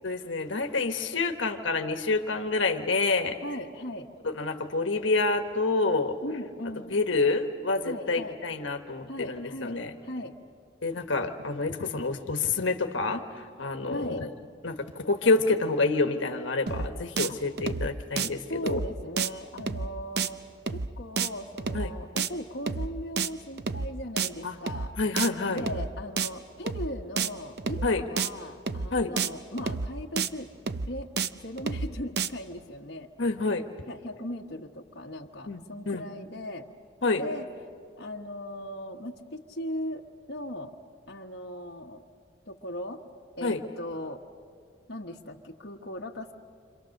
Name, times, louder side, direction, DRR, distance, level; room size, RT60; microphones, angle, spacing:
voice 1, 0.0-3.4 4.2-6.2 6.9-9.9 10.8-14.3 14.6-18.8 21.7-21.9 24.4-24.6 25.0-25.6 27.8-28.0 28.9-29.1 33.2-33.6 35.5-36.0 37.0-37.2 43.4-43.6, left 3 dB, 75° left, 6 dB, 1.3 m, -28 dB
voice 2, 3.4-4.1 6.2-7.0 7.9-8.4 9.1-10.3 13.9-14.2 17.3-17.4 18.5-20.4 20.7-24.9 25.5-30.5 30.9-33.1 33.9-36.7 37.1-37.5 38.0-40.7 41.1-42.0 42.5-43.0 43.4-44.2 44.9-46.3, left 1 dB, 55° left, 0 dB, 1.3 m, -38 dB
sound 1, 16.7-16.9 17.2-17.3 17.6-17.9 18.2-18.3 18.7-18.9 19.2-19.3 19.6-19.9 20.2-20.3 20.7-20.9 21.2-21.3 21.6-21.9 22.2-22.3 22.7-22.9 23.2-23.3 23.6-23.9 24.2-24.3 24.7-24.9 25.2-25.3 25.6-25.9 26.2-26.3 26.7-26.9 27.2-27.3 27.6-27.9 28.2-28.3 28.7-28.9 29.2-29.3 29.6-29.9 30.2-30.3 30.7-30.9 31.2-31.3 31.6-31.9 32.2-32.3, right 5 dB, 55° right, 0.6 m, -29 dB
28.0 x 26.0 x 6.5 m, 2.3 s
head